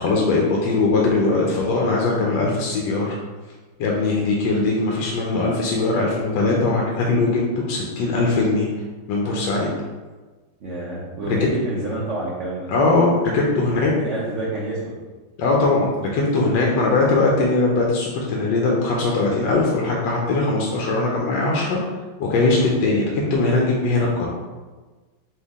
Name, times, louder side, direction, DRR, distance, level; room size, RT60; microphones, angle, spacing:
voice 1, 0.0-3.2 3.8-8.7 9.1-9.7 11.3-11.4 12.7-13.9 15.4-21.8 22.2-24.3, left 3 dB, 75° left, -2 dB, 1.2 m, -20 dB
voice 2, 10.6-12.7 13.7-14.9, right 2 dB, 70° right, -6 dB, 0.7 m, -28 dB
4.5 x 2.7 x 3.5 m, 1.3 s
omnidirectional pair, 2.1 m